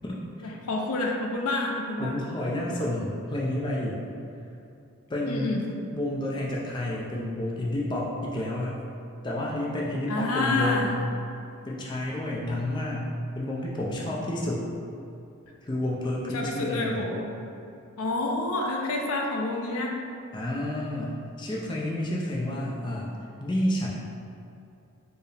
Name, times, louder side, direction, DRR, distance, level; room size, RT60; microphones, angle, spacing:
voice 1, 0.4-2.2 5.2-5.6 10.1-10.9 16.3-17.3 18.0-19.9, left 2 dB, 90° left, 0 dB, 0.5 m, -28 dB
voice 2, 2.0-4.0 5.1-5.5 5.9-8.8 9.2-10.9 11.7-14.7 15.7-17.0 20.3-23.9, left 1 dB, 20° left, -4 dB, 0.3 m, -30 dB
4.4 x 2.0 x 3.3 m, 2.6 s
head